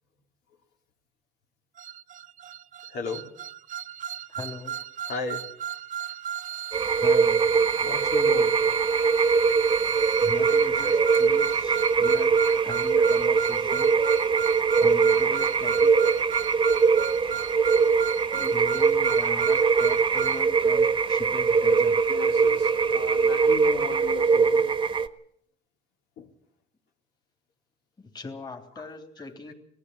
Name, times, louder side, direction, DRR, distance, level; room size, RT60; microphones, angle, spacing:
sound 1, 1.8-20.4, right 10 dB, 50° right, 0.7 m, -35 dB
voice 1, 2.9-3.2 5.0-5.5 7.8-8.5 16.9-17.0 19.8-19.9 20.6-20.7 22.1-24.7 26.2-26.3 28.8-28.9, left 5 dB, 80° left, 3.4 m, -35 dB
voice 2, 4.3-4.8 7.0-7.4 10.2-13.9 14.4-15.9 17.2-17.5 18.3-22.0 28.0-29.5, left 3 dB, 25° left, 3.4 m, -41 dB
sound 2, 6.7-25.1, right 5 dB, 30° right, 1.2 m, -22 dB
20.0 x 15.0 x 9.5 m
cardioid pair, 110°, 17 cm